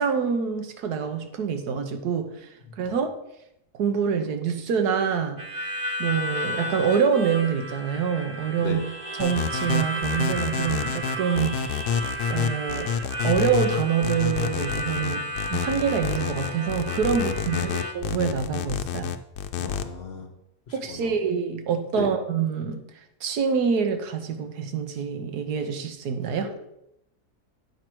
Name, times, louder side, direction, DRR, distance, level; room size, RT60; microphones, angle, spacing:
voice 1, 0.0-2.5 2.8-3.1 3.8-5.7 6.0-8.8 9.2-11.9 12.3-12.9 13.2-19.1 20.7-22.8 23.2-26.5, right 6 dB, 80° right, 7 dB, 1.4 m, -26 dB
Harmonica, 5.4-17.9, equal, 30° right, 0.6 m, -33 dB
sound 1, 9.2-19.8, left 8 dB, 85° left, 1.2 m, -28 dB
voice 2, 17.1-17.7 19.6-20.3 20.7-21.2 21.9-22.1 26.5-26.6, left 4 dB, 45° left, 3 dB, 1.2 m, -36 dB
8.7 x 4.5 x 6.0 m, 0.82 s
omnidirectional pair, 1.7 m